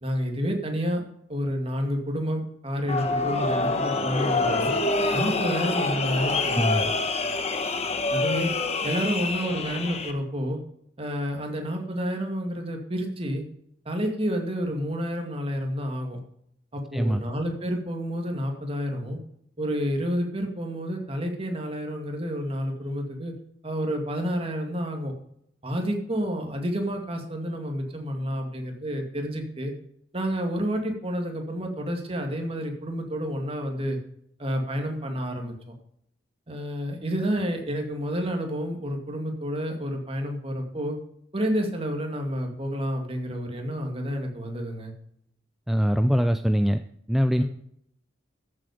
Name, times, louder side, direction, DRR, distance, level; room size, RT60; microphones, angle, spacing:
voice 1, 0.0-1.0 1.3-4.7 5.1-6.9 8.1-8.5 8.8-10.6 11.0-13.4 13.9-16.2 16.7-19.2 19.6-23.3 23.6-25.1 25.6-29.7 30.1-34.0 34.4-35.5 36.5-41.0 41.3-44.9 47.4-47.5, equal, 30° right, 3 dB, 2.4 m, -29 dB
sound 1, 2.9-10.1, left 3 dB, 35° left, 1.3 m, -26 dB
voice 2, 16.9-17.2 45.7-46.8 47.1-47.4, equal, ahead, 8 dB, 0.4 m, -22 dB
14.0 x 7.8 x 5.1 m, 0.71 s
head